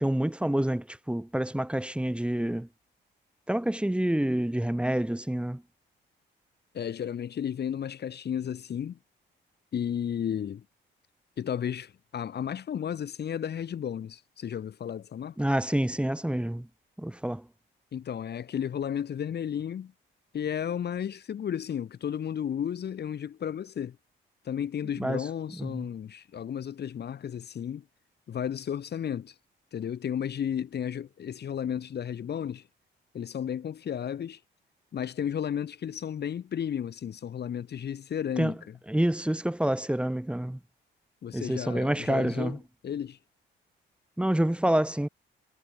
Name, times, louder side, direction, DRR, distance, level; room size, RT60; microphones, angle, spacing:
voice 1, 0.0-2.7 3.5-5.6 15.4-16.7 17.0-17.5 25.0-25.3 25.6-25.9 38.4-38.6 38.9-40.6 41.3-42.6 44.2-45.1, right 1 dB, 5° right, 3.7 m, -27 dB
voice 2, 6.7-9.0 9.7-10.6 11.4-15.3 17.9-19.9 20.3-24.0 24.4-27.8 28.3-29.3 29.7-32.6 33.1-34.4 34.9-38.6 41.2-42.6 42.8-43.2, left 9 dB, 55° left, 2.5 m, -33 dB
cardioid pair, 90°, 20 cm